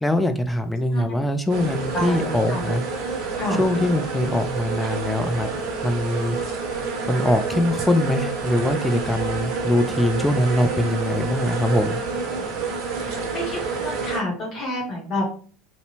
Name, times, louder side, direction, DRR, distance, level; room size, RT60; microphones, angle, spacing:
voice 1, 0.0-2.8 3.5-5.5 5.8-6.4 7.1-12.0, left 1 dB, 10° left, 7 dB, 0.4 m, -22 dB
sound 1, 1.5-14.2, right 4 dB, 60° right, 0.6 m, -28 dB
voice 2, 1.9-2.6 3.4-3.6 12.4-12.5 13.1-15.3, left 1 dB, 50° left, -1 dB, 1.0 m, -29 dB
2.6 x 2.0 x 2.8 m, 0.42 s
hypercardioid pair, 70°, 0 cm